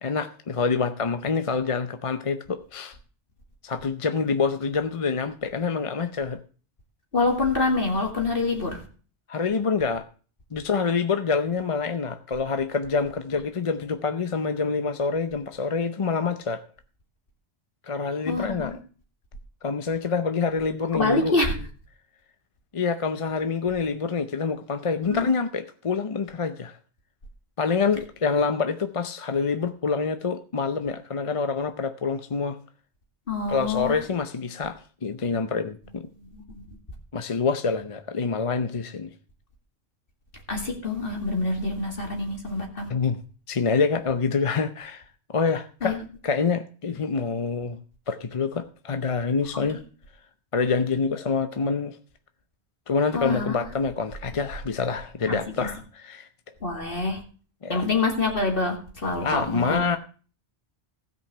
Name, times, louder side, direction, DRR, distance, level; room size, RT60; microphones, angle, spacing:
voice 1, 0.0-3.0 3.6-6.4 9.3-10.0 10.5-16.6 17.9-18.8 19.6-21.4 22.7-26.8 27.6-32.6 33.5-36.1 37.1-39.1 42.9-43.2 43.5-45.0 45.3-46.0 46.2-47.8 48.1-49.8 50.5-52.0 52.9-56.3 57.6-57.9 59.2-60.0, left 5 dB, 35° left, 0.6 m, -26 dB
voice 2, 7.1-8.8 18.3-18.8 20.9-21.6 25.1-25.3 33.3-34.0 36.3-36.7 40.5-42.9 45.8-46.0 49.5-49.6 53.1-53.7 55.3-55.4 56.6-57.2 57.7-59.9, left 3 dB, 50° left, 2.3 m, -26 dB
15.5 x 5.4 x 6.6 m
omnidirectional pair, 1.2 m